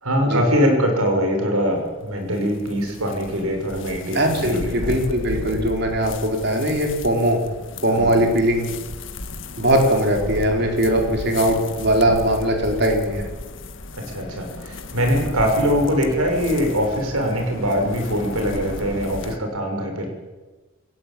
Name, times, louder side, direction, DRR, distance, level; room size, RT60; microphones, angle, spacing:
voice 1, 0.0-5.0 7.9-8.2 13.9-20.1, equal, 90° right, 3 dB, 6.6 m, -22 dB
sound 1, 1.6-19.4, left 2 dB, 60° left, 1.8 m, -35 dB
voice 2, 4.1-7.4 7.8-8.7 9.6-13.3, right 1 dB, 50° right, 2 dB, 4.8 m, -20 dB
28.0 x 16.5 x 8.7 m, 1.2 s
head